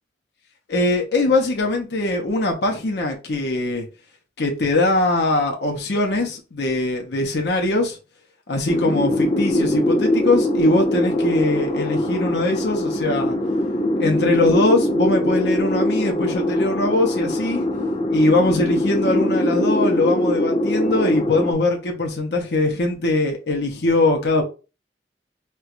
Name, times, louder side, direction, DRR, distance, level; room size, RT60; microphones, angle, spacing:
voice 1, 0.7-3.9 4.4-8.0 8.5-13.4 14.0-17.7 18.1-24.4, left 2 dB, 65° left, 0.7 m, -21 dB
sound 1, 8.7-21.5, left 1 dB, 30° left, 0.5 m, -22 dB
4.3 x 2.3 x 2.4 m
head